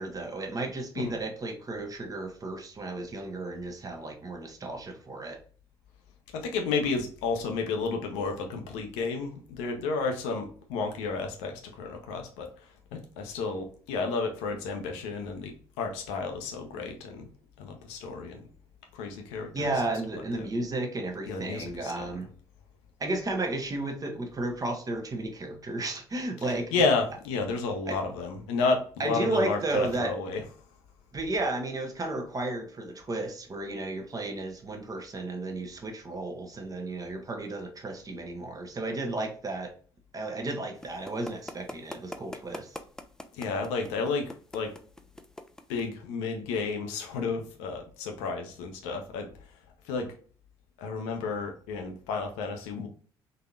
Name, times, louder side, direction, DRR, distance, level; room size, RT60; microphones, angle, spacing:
voice 1, 0.0-5.4 19.5-22.3 23.0-26.9 27.9-28.0 29.0-30.1 31.1-39.7 40.1-42.8, right 2 dB, 30° right, 4 dB, 0.8 m, -33 dB
voice 2, 6.3-12.5 12.9-17.3 17.6-18.5 18.9-19.7 21.3-22.0 26.4-30.4 43.3-44.7 45.7-49.3 49.9-50.1 50.8-52.9, left 4 dB, 65° left, 3 dB, 0.6 m, -31 dB
sound 1, 40.8-45.9, left 1 dB, 5° left, 0.4 m, -41 dB
3.9 x 2.7 x 2.4 m, 0.43 s
figure-of-eight pair, 50°, 13 cm